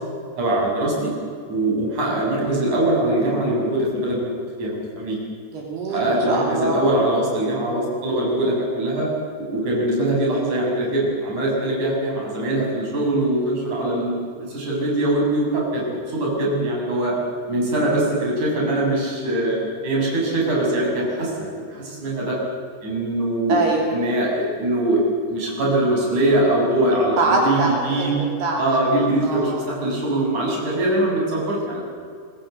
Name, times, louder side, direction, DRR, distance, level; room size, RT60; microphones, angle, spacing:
voice 1, 0.4-1.1 1.5-4.3 4.6-5.2 5.9-9.1 9.4-14.1 14.5-17.1 17.5-19.6 19.8-22.4 22.8-23.6 23.9-25.0 25.3-28.1 28.6-31.8, right 1 dB, 40° right, -3 dB, 8.3 m, -22 dB
voice 2, 5.5-6.8 23.5-23.9 27.2-28.8 29.2-29.6, right 3 dB, 65° right, 0 dB, 4.7 m, -23 dB
27.5 x 21.0 x 7.9 m, 2.2 s
omnidirectional pair, 5.1 m